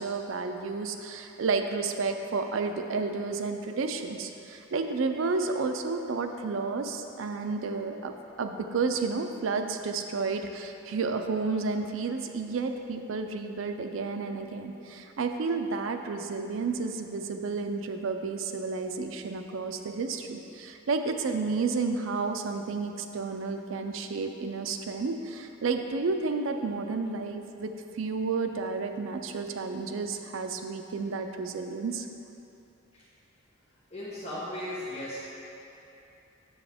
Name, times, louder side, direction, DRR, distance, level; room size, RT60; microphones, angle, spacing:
voice 1, 0.0-8.1 8.4-32.1, right 4 dB, 70° right, 6 dB, 0.4 m, -31 dB
voice 2, 33.9-35.2, left 1 dB, 30° left, -10 dB, 1.1 m, -36 dB
7.1 x 7.0 x 3.5 m, 2.8 s
head